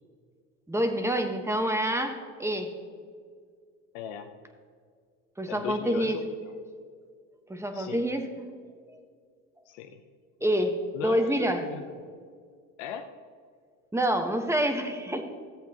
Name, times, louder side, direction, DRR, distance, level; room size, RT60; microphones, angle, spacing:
voice 1, 0.7-2.7 5.4-6.2 7.5-8.5 10.4-11.6 13.9-15.2, equal, 5° right, 5 dB, 1.2 m, -27 dB
voice 2, 3.9-4.3 5.5-6.5 7.7-8.1 9.7-10.0 10.9-12.1 12.8-13.1, left 8 dB, 80° left, 6 dB, 0.8 m, -39 dB
14.5 x 8.0 x 2.9 m, 2.1 s
supercardioid pair, 85°, 37 cm